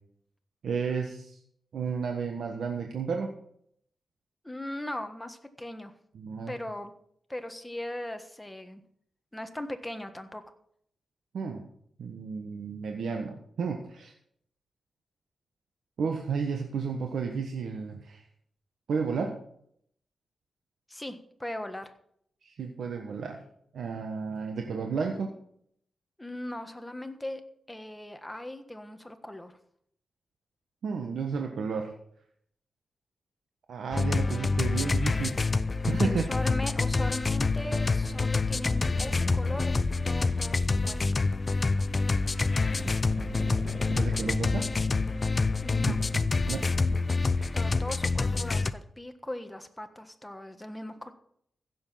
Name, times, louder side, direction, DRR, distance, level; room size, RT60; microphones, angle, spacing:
voice 1, 0.6-1.4 1.7-3.3 6.1-6.5 11.3-11.7 12.0-14.1 16.0-18.2 18.9-19.4 22.4-23.4 23.7-25.3 30.8-31.9 33.7-35.4 35.8-36.5 43.5-44.7 45.9-46.2 46.5-47.0 47.4-47.5, right 5 dB, 85° right, 3 dB, 1.3 m, -32 dB
voice 2, 4.4-5.9 6.5-6.9 7.3-8.8 9.3-10.5 20.9-21.9 26.2-27.4 27.7-29.6 36.0-41.2 45.6-46.0 47.5-51.1, left 1 dB, 10° left, 8 dB, 1.4 m, -39 dB
sound 1, 33.9-48.7, left 3 dB, 35° left, 0.6 m, -27 dB
sound 2, 37.0-41.4 42.3-46.0, right 3 dB, 50° right, 1.8 m, -45 dB
15.5 x 7.2 x 5.8 m, 0.67 s
cardioid pair, 85°, 0 cm